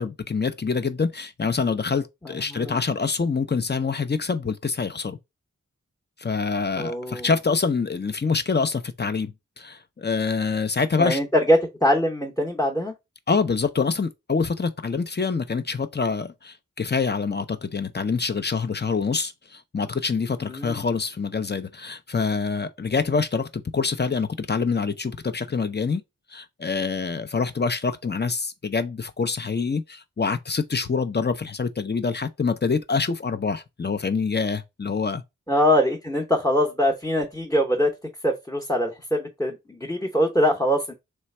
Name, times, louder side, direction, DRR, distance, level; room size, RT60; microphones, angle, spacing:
voice 1, 0.0-5.2 6.2-11.2 13.3-26.0 26.3-35.2, left 5 dB, 35° left, 0.6 m, -26 dB
voice 2, 2.2-2.8 6.8-7.3 11.0-12.9 20.4-20.9 35.5-37.9 38.2-40.9, equal, 10° left, 0.9 m, -23 dB
3.3 x 3.1 x 4.3 m
wide cardioid pair, 45°, 31 cm